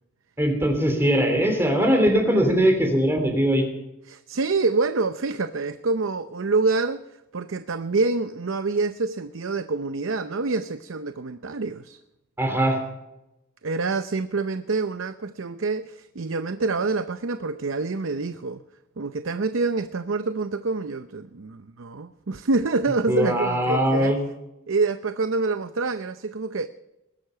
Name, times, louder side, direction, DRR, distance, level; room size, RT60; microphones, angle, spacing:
voice 1, 0.4-3.7 12.4-12.8 23.1-24.2, equal, 10° right, 4 dB, 3.1 m, -21 dB
voice 2, 4.1-7.0 7.3-12.0 13.6-18.6 19.0-24.2 24.7-26.7, right 3 dB, 80° right, 11 dB, 0.7 m, -26 dB
21.0 x 11.5 x 5.7 m, 0.93 s
head